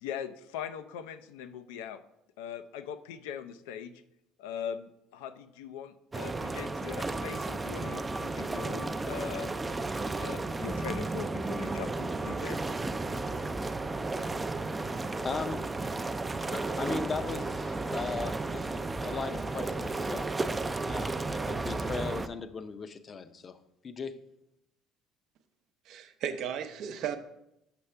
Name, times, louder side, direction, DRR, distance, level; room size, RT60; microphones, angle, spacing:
voice 1, 0.0-2.0 2.4-3.9 4.4-9.5 10.1-12.6, left 8 dB, 85° left, 0.4 m, -41 dB
sound 1, 6.1-22.3, right 3 dB, 20° right, 0.4 m, -33 dB
voice 2, 15.2-15.7 16.6-20.3 20.9-23.6 23.8-24.2, left 5 dB, 40° left, 0.6 m, -38 dB
sound 2, 16.5-18.8, left 3 dB, 65° left, 0.9 m, -49 dB
voice 3, 25.9-27.2, right 8 dB, 65° right, 0.6 m, -35 dB
6.8 x 5.4 x 3.3 m
supercardioid pair, 80°, 0 cm